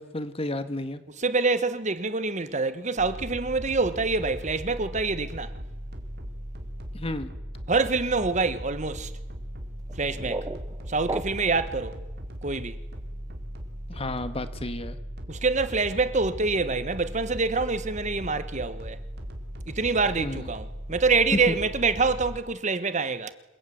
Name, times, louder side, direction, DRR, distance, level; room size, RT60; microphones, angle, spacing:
voice 1, 0.0-1.0 6.9-7.3 13.9-15.0 20.2-20.5 21.5-21.6, left 1 dB, 30° left, 1.8 m, -32 dB
voice 2, 1.2-5.5 7.7-9.1 10.0-10.5 10.9-12.0 12.4-12.8 15.3-19.0 19.7-23.3, right 4 dB, 40° right, 1.4 m, -26 dB
sound 1, 3.0-22.4, equal, 55° right, 3.9 m, -38 dB
sound 2, 9.8-11.7, right 2 dB, 20° right, 0.9 m, -35 dB
27.5 x 21.5 x 9.4 m
head